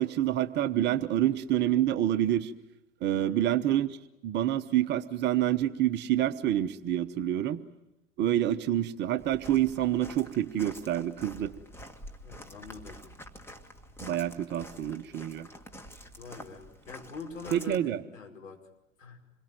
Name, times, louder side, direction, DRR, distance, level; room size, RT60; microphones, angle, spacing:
voice 1, 0.0-2.5 3.0-4.0 4.2-7.6 8.2-11.5 14.0-15.5 17.5-18.0, right 12 dB, 25° right, 11 dB, 1.0 m, -27 dB
voice 2, 3.1-3.5 12.2-13.1 16.2-18.6 19.0-19.2, left 4 dB, 70° left, 3 dB, 5.4 m, -45 dB
Walk footsteps, 9.2-17.8, equal, 5° left, 1.8 m, -48 dB
27.5 x 22.0 x 9.3 m, 0.89 s
figure-of-eight pair, 95°, 40 cm